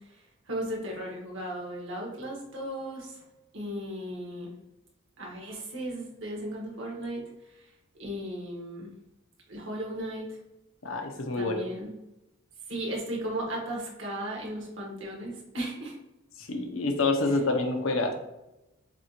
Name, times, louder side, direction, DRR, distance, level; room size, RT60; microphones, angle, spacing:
voice 1, 0.5-3.1 3.5-4.5 5.2-7.2 8.0-8.9 9.5-10.3 11.4-11.9 12.7-15.9, right 1 dB, 70° right, -2 dB, 1.5 m, -35 dB
voice 2, 10.8-11.5 16.5-18.1, left 3 dB, 85° left, 4 dB, 0.8 m, -27 dB
7.2 x 2.5 x 3.0 m, 0.91 s
head